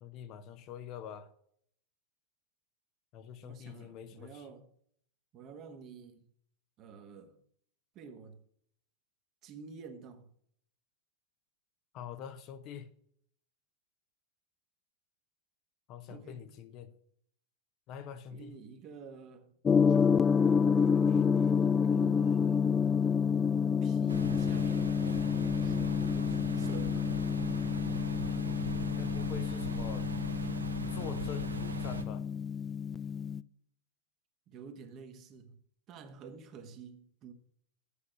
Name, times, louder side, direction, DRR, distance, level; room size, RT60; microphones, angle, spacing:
voice 1, 0.0-1.3 3.1-4.5 11.9-12.9 15.9-16.9 17.9-18.6 29.0-30.1 30.9-32.2, left 8 dB, 40° left, 0.8 m, -45 dB
voice 2, 3.4-4.7 5.3-6.3 6.8-7.4 7.9-8.4 9.4-10.3 16.1-16.5 18.3-19.5 21.0-22.8 23.8-25.0 25.6-27.2 34.5-35.6 35.9-37.3, right 6 dB, 35° right, 1.4 m, -49 dB
Gong, 19.6-33.4, left 6 dB, 20° left, 0.3 m, -29 dB
sound 1, 24.1-32.0, right 3 dB, 75° right, 1.0 m, -40 dB
8.4 x 6.4 x 6.3 m
figure-of-eight pair, 90°, 0 cm